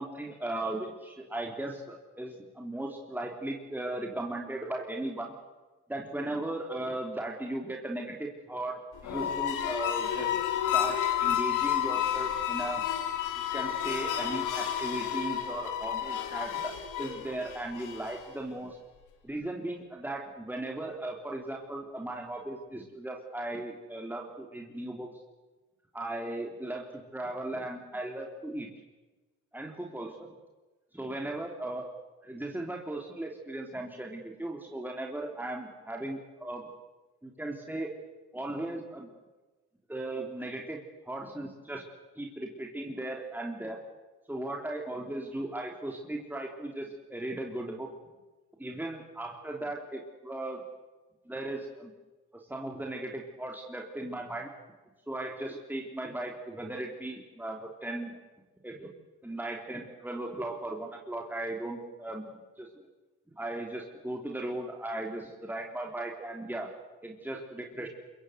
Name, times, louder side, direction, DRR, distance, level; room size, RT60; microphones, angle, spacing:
voice 1, 0.0-5.3 5.9-10.4 10.7-12.8 13.4-18.8 19.2-25.1 25.9-28.7 29.5-30.1 30.9-31.9 32.2-36.6 37.2-37.9 38.3-39.1 39.9-41.8 42.2-43.8 44.3-47.9 48.6-50.6 51.3-51.9 52.5-54.5 55.1-58.1 58.6-58.9 59.2-62.3 62.6-62.7 63.4-66.7 67.0-67.9, right 1 dB, 5° right, 1 dB, 3.5 m, -37 dB
sound 1, 9.0-18.4, left 10 dB, 90° left, 3.6 m, -31 dB
26.0 x 23.5 x 8.2 m, 1.2 s
cardioid pair, 90°, 30 cm